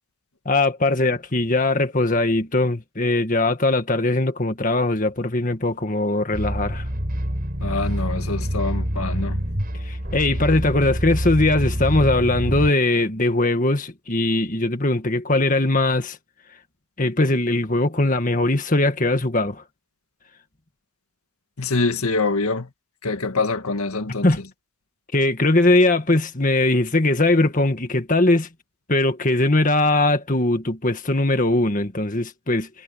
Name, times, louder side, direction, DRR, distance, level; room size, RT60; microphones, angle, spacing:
voice 1, 0.5-6.8 9.9-16.2 17.0-19.6 24.2-24.4 25.1-28.5 28.9-32.7, left 2 dB, 35° left, 1.9 m, -20 dB
sound 1, 6.3-12.7, equal, 45° right, 4.4 m, -26 dB
voice 2, 7.6-9.4 21.6-22.7 23.0-24.4, left 3 dB, 90° left, 1.9 m, -25 dB
head